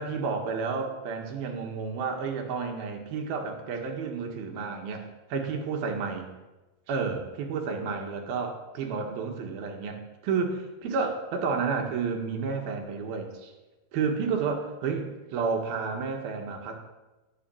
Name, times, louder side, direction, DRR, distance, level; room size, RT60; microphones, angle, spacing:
voice 1, 0.0-5.0 5.3-6.3 6.9-13.5 13.9-16.9, right 5 dB, 70° right, 3 dB, 3.6 m, -31 dB
17.5 x 7.4 x 9.1 m, 1.1 s
omnidirectional pair, 4.4 m